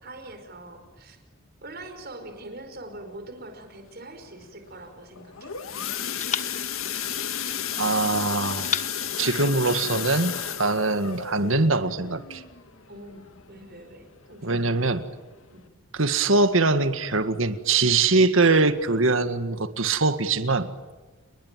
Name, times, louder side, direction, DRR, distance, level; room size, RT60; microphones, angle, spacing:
voice 1, 0.0-1.2 1.6-5.5 12.9-14.8 15.5-15.6, right 2 dB, 50° right, 6 dB, 5.1 m, -43 dB
sound 1, 4.4-5.6 6.2-7.8 8.6-10.2, left 8 dB, 35° left, 1.4 m, -36 dB
sound 2, 5.2-13.8 14.3-14.5 14.8-14.9 15.4-15.5, left 8 dB, 90° left, 1.8 m, -33 dB
voice 2, 7.7-8.7 9.2-12.4 14.4-15.0 15.9-20.7, right 3 dB, 75° right, 10 dB, 1.8 m, -22 dB
30.0 x 21.0 x 9.2 m, 1.2 s
head